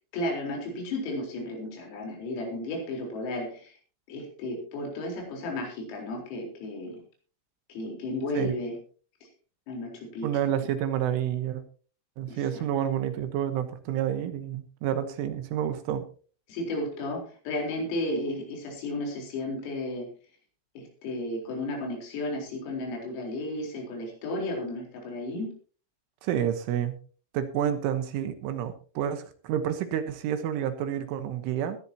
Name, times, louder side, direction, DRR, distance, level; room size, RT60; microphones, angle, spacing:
voice 1, 0.1-3.7 4.1-7.0 7.7-8.8 9.7-10.3 12.3-12.7 16.5-20.1 20.8-25.5, left 1 dB, 85° left, 1 dB, 6.9 m, -33 dB
voice 2, 10.2-11.6 12.2-16.0 26.2-27.0 27.3-31.8, right 10 dB, 75° right, 9 dB, 3.5 m, -29 dB
20.5 x 11.5 x 2.9 m, 0.39 s
omnidirectional pair, 6.0 m